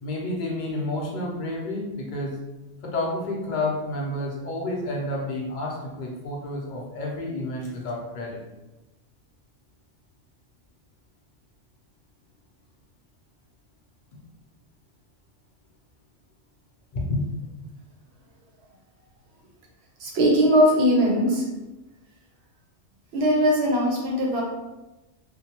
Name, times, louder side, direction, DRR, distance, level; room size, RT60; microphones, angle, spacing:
voice 1, 0.0-2.3 2.8-8.4 16.9-17.2, left 2 dB, 50° left, -2 dB, 0.6 m, -30 dB
voice 2, 20.0-21.4 23.1-24.4, equal, 65° right, -1 dB, 0.8 m, -20 dB
2.6 x 2.2 x 2.8 m, 1.1 s
omnidirectional pair, 1.2 m